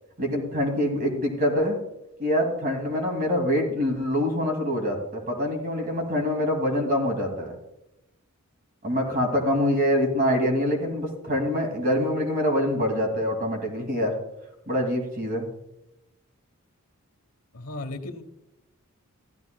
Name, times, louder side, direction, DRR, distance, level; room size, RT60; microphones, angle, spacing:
voice 1, 0.2-1.8 2.2-7.6 8.8-14.1 14.7-15.5, equal, 40° right, 2 dB, 2.5 m, -25 dB
voice 2, 17.5-18.2, left 2 dB, 80° left, 6 dB, 1.1 m, -35 dB
14.5 x 12.0 x 2.3 m, 0.89 s
head